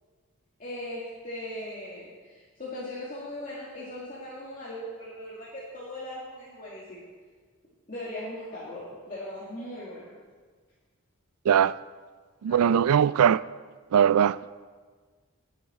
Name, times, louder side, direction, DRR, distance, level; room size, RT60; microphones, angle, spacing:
voice 1, 0.6-7.0 7.9-10.1 12.5-12.7, left 1 dB, 40° left, 2.1 m, -39 dB
voice 2, 11.4-11.7 12.4-13.4 13.9-14.4, right 8 dB, 85° right, 0.3 m, -20 dB
19.5 x 8.4 x 4.3 m
head